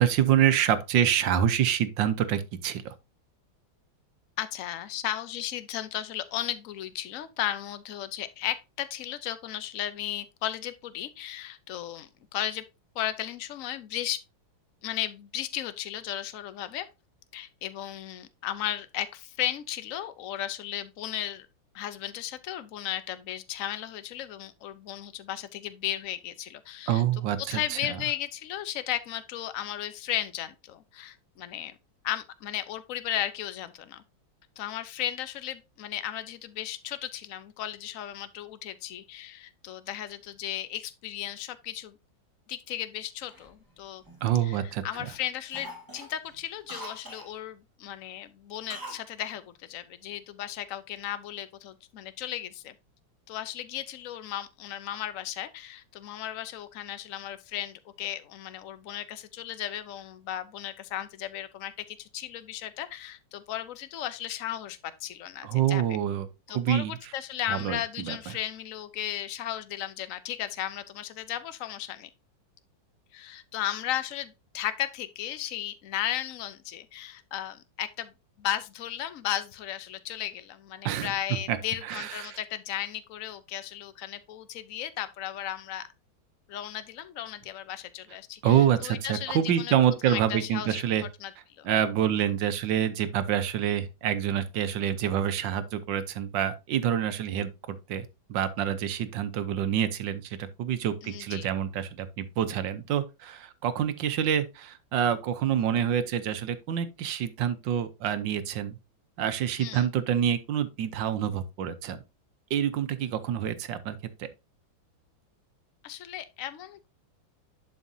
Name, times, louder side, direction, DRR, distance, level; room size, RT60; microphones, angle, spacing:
voice 1, 0.0-2.9 26.9-28.0 44.2-44.8 65.4-66.3 66.5-67.0 67.5-68.3 80.8-81.1 81.5-81.6 81.8-82.4 88.4-91.0 91.6-108.8 109.2-112.0 112.5-114.3, right 10 dB, 70° right, 1.5 m, -27 dB
voice 2, 4.4-12.6 12.9-14.2 14.8-16.9 17.3-21.5 21.7-27.0 27.5-31.8 32.0-34.0 34.6-41.9 42.5-44.0 44.4-52.7 53.3-65.8 66.5-72.1 73.1-78.1 78.4-85.9 86.5-89.7 90.0-90.8 91.2-91.7 101.0-101.5 109.6-109.9 115.8-116.9, left 11 dB, 60° left, 0.9 m, -35 dB
Cough, 43.3-44.6 44.9-45.2 45.5-47.3 48.7-49.1 49.3-49.4, right 1 dB, 10° right, 1.3 m, -43 dB
11.0 x 5.2 x 2.7 m
omnidirectional pair, 2.1 m